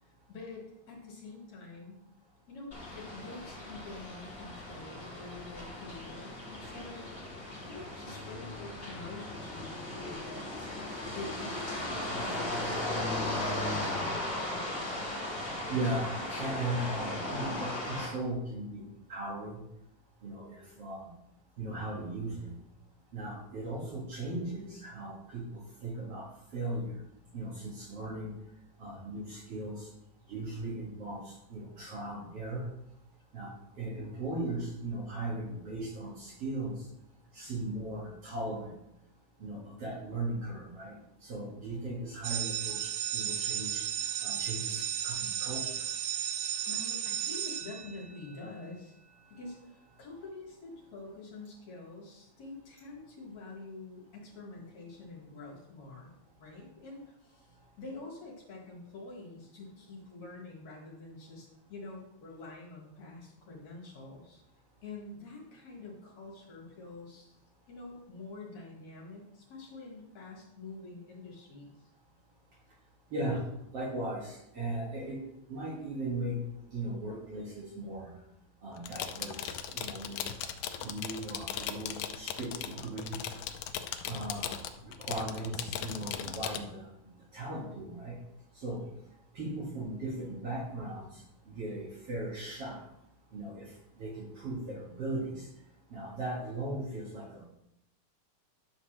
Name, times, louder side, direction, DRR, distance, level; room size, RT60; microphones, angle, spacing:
voice 1, 0.0-2.0 2.5-7.1 7.6-10.5 11.1-14.8 46.7-49.0 49.3-56.1 56.4-64.4 64.8-67.3 67.7-71.7, left 3 dB, 55° left, -2 dB, 2.8 m, -47 dB
sound 1, 2.7-18.1, left 1 dB, 20° left, 2.1 m, -37 dB
voice 2, 15.7-16.1 16.4-18.8 19.1-19.6 20.2-21.1 21.6-22.5 23.1-26.3 26.5-27.0 27.3-28.3 28.8-29.9 30.3-32.7 33.3-36.8 37.3-38.7 39.4-41.0 41.2-43.9 44.2-45.7 73.1-73.4 73.7-75.2 75.5-76.4 76.7-78.1 78.6-80.2 80.8-83.2 84.1-86.9 87.3-88.2 88.6-88.9 89.3-92.8 93.3-93.7 94.0-95.5 95.9-97.4, right 2 dB, 50° right, -4 dB, 2.3 m, -37 dB
sound 2, 42.2-48.4, right 10 dB, 80° right, 2.1 m, -34 dB
sound 3, 78.8-86.6, left 9 dB, 85° left, 1.6 m, -38 dB
10.5 x 4.0 x 6.5 m, 0.83 s
omnidirectional pair, 4.1 m